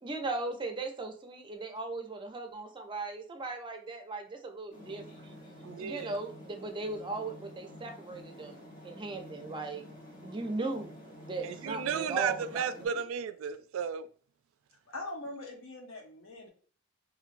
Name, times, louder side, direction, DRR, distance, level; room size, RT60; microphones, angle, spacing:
voice 1, 0.0-5.3 5.8-9.8 10.2-10.9 11.3-13.0, right 2 dB, 25° right, 0.5 m, -38 dB
sound 1, 4.7-12.9, equal, 45° left, 0.9 m, -49 dB
voice 2, 5.1-5.5 14.9-16.5, left 2 dB, 85° left, 0.8 m, -43 dB
voice 3, 5.6-6.1 11.4-14.1, right 7 dB, 85° right, 0.3 m, -34 dB
2.9 x 2.6 x 2.5 m
head